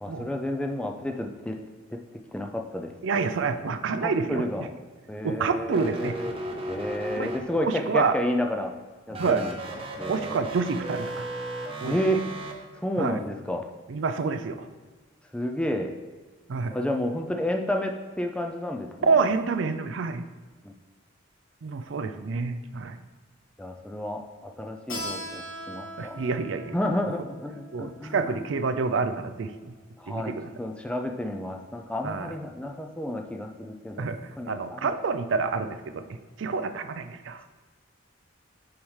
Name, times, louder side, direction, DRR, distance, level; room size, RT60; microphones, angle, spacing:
voice 1, 0.0-1.6 2.3-2.9 4.0-4.7 5.1-6.3 6.7-8.7 9.1-9.5 10.0-10.4 11.8-12.2 12.8-13.7 15.3-15.9 16.7-19.3 20.6-20.7 23.6-26.2 26.7-28.2 30.0-30.3 30.6-34.1 34.4-34.9, left 1 dB, 5° left, 3 dB, 0.4 m, -31 dB
voice 2, 3.0-4.5 5.2-6.2 7.2-8.2 9.2-9.4 10.1-11.3 11.8-12.0 13.0-13.2 13.9-14.7 16.5-16.8 19.1-20.2 21.6-23.0 26.0-26.7 27.7-29.7 30.1-30.5 32.0-32.3 34.0-34.2 34.5-37.4, right 4 dB, 65° right, 9 dB, 0.4 m, -28 dB
sound 1, 5.7-7.8 9.1-12.5, right 1 dB, 30° right, 0.7 m, -35 dB
Keyboard (musical), 24.9-30.2, equal, 85° left, 1.4 m, -41 dB
7.1 x 4.9 x 3.2 m, 1.4 s
head